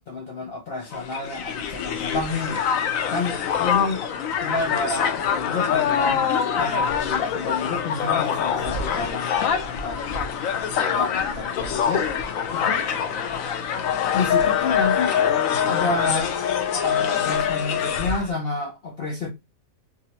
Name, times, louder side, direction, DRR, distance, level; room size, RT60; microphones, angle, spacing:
voice 1, 0.1-2.6 3.1-4.1 4.4-6.2 6.6-10.2 10.5-12.8 14.1-15.2 15.7-16.3 16.8-19.3, left 3 dB, 85° left, 0.5 m, -30 dB
Crowd, 0.9-18.3, left 7 dB, 70° left, 0.9 m, -24 dB
3.7 x 2.0 x 2.8 m
omnidirectional pair, 1.7 m